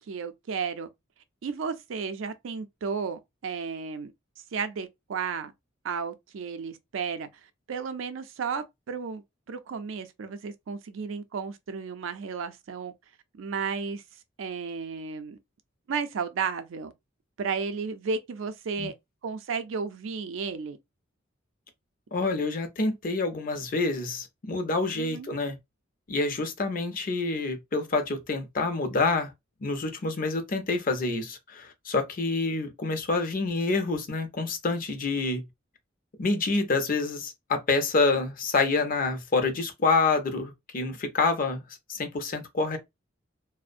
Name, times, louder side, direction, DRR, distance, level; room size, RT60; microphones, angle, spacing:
voice 1, 0.1-0.9 1.4-4.1 4.5-5.5 5.8-7.3 7.7-9.2 9.5-12.9 13.4-14.0 14.4-15.4 15.9-16.9 17.4-18.9 19.2-20.8 24.9-25.3, right 5 dB, 80° right, 0.4 m, -33 dB
voice 2, 22.1-25.6 26.1-29.3 29.6-35.4 36.2-41.6 41.9-42.8, left 3 dB, 45° left, 0.5 m, -27 dB
2.4 x 2.0 x 2.5 m
head